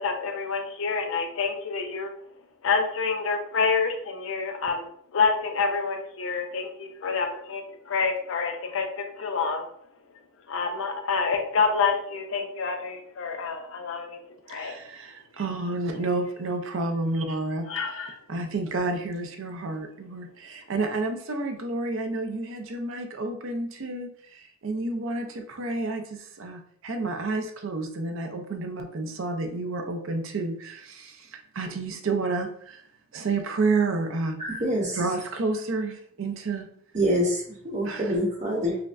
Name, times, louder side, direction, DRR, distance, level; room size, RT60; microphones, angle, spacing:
voice 1, 0.0-2.1 2.6-9.7 10.5-14.2 14.5-14.7 17.7-18.1, left 5 dB, 65° left, 4 dB, 0.5 m, -27 dB
voice 2, 14.5-18.0 18.3-32.8 33.1-34.4 34.9-36.7 37.8-38.1, right 3 dB, 60° right, 5 dB, 0.6 m, -30 dB
voice 3, 34.4-35.0 36.9-38.8, equal, 35° right, -1 dB, 0.9 m, -26 dB
5.7 x 2.1 x 2.5 m, 0.63 s
head